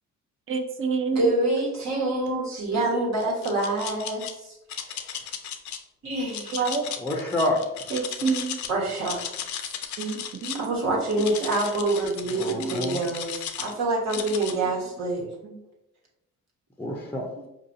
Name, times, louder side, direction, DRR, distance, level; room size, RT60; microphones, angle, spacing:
voice 1, 0.5-1.3 6.5-6.9 7.9-8.6 10.0-11.5 12.5-12.7 14.2-14.3 14.8-14.9 15.4-15.6 17.4-17.5, right 5 dB, 45° right, 6 dB, 0.6 m, -29 dB
voice 2, 1.1-4.6 4.8-5.0 6.0-6.6 8.7-9.2 10.5-13.3 13.6-15.3, right 2 dB, 65° right, -2 dB, 1.4 m, -26 dB
sound 1, 3.2-4.3 4.7-5.8 6.3-8.7 9.0-10.7 11.1-13.7 14.1-14.5, left 9 dB, 70° left, 0.5 m, -35 dB
voice 3, 7.0-7.9 12.3-13.0 16.8-17.3, left 1 dB, 5° left, 0 dB, 0.5 m, -28 dB
4.7 x 2.7 x 2.6 m, 0.87 s
cardioid pair, 90°, 30 cm